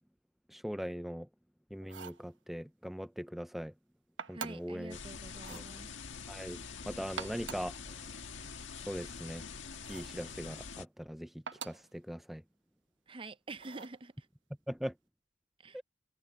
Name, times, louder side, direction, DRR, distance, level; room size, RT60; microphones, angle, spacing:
voice 1, 0.5-1.3 1.7-3.7 4.3-5.0 5.5-5.6 6.3-8.0 8.9-9.4 9.9-11.3 11.6-12.4 14.7-14.9 15.7-15.8, equal, ahead, 0.3 m, -40 dB
sound 1, 1.8-2.3 4.2-4.8 5.4-5.7 7.0-7.8 9.8-10.2 11.5-11.9 13.6-14.0, right 6 dB, 75° right, 1.2 m, -45 dB
voice 2, 4.3-5.9 13.1-14.3 15.6-15.8, right 2 dB, 30° right, 0.7 m, -47 dB
sound 2, 4.9-10.9, left 5 dB, 80° left, 1.7 m, -45 dB
head